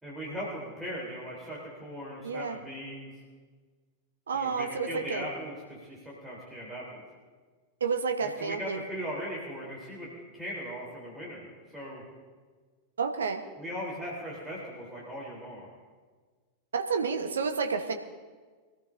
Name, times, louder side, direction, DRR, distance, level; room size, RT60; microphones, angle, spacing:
voice 1, 0.0-3.1 4.3-7.0 8.2-11.4 11.7-12.0 13.6-15.7, equal, 5° right, -5 dB, 3.8 m, -39 dB
voice 2, 2.2-2.6 4.3-5.2 7.8-8.8 13.0-13.4 16.7-17.9, right 5 dB, 70° right, 5 dB, 1.2 m, -30 dB
24.0 x 14.5 x 2.7 m, 1.4 s
figure-of-eight pair, 90°, 0 cm